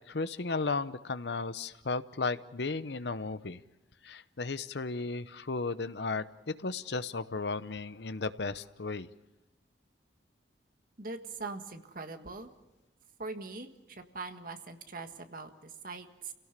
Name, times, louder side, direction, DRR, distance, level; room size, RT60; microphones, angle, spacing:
voice 1, 0.1-3.6 4.0-9.1, left 3 dB, 65° left, 13 dB, 0.8 m, -35 dB
voice 2, 11.0-12.5 13.2-16.3, right 3 dB, 50° right, 6 dB, 1.7 m, -42 dB
29.5 x 17.5 x 6.7 m, 1.1 s
head